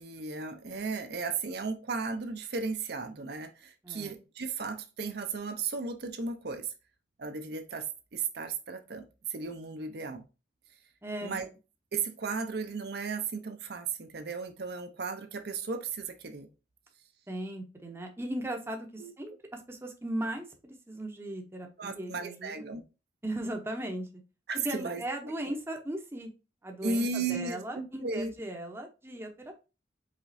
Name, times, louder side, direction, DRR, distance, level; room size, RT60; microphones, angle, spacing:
voice 1, 0.0-6.7 7.2-7.9 8.1-10.2 11.2-11.5 11.9-16.5 19.0-19.1 21.8-22.8 24.5-25.6 26.8-28.3, right 4 dB, 60° right, 0.6 m, -35 dB
voice 2, 11.0-11.4 17.3-22.7 23.2-24.1 24.6-26.3 26.6-29.5, right 1 dB, 15° right, 0.7 m, -37 dB
5.0 x 3.6 x 2.6 m
head